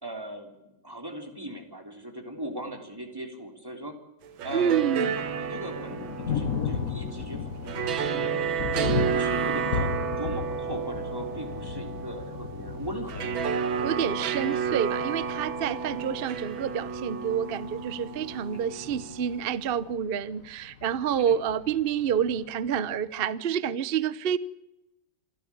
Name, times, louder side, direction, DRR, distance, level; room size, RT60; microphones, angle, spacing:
voice 1, 0.0-4.0 4.4-8.6 9.1-14.0 16.0-16.1 18.5-18.6 21.1-21.4, equal, 10° right, 3.5 m, -39 dB
sound 1, 4.2-19.4, right 6 dB, 90° right, 2.1 m, -31 dB
voice 2, 4.5-5.1 13.8-24.4, right 8 dB, 50° right, 0.7 m, -28 dB
Thunder, 5.1-23.0, left 6 dB, 50° left, 1.4 m, -36 dB
27.0 x 12.5 x 8.6 m
omnidirectional pair, 2.1 m